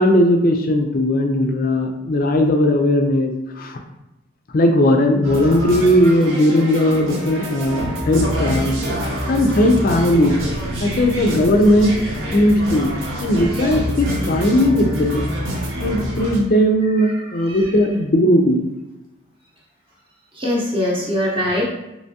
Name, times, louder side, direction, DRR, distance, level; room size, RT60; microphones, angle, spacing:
voice 1, 0.0-3.8 4.5-8.7 9.3-10.4 10.8-12.0 12.3-12.9 13.2-15.2 15.8-18.6, left 1 dB, 45° left, 4 dB, 0.4 m, -17 dB
sound 1, 5.2-16.4, equal, 65° right, 0.9 m, -26 dB
voice 2, 17.0-17.6 20.3-21.7, left 1 dB, 25° right, -5 dB, 0.7 m, -23 dB
3.4 x 3.0 x 2.7 m, 0.97 s
head